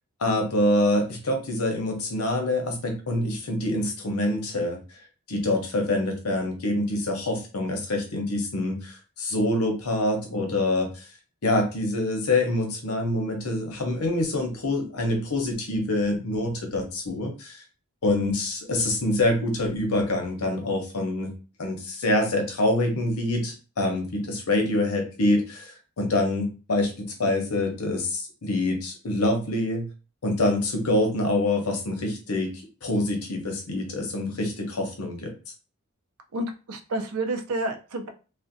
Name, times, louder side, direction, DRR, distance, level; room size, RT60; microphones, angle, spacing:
voice 1, 0.2-4.8 5.3-11.1 11.4-17.6 18.0-21.3 21.6-29.9 30.2-32.5 32.8-35.3, left 1 dB, 85° left, 3 dB, 0.8 m, -26 dB
voice 2, 36.3-38.1, right 2 dB, 85° right, 6 dB, 0.5 m, -29 dB
2.5 x 2.1 x 2.5 m, 0.34 s
head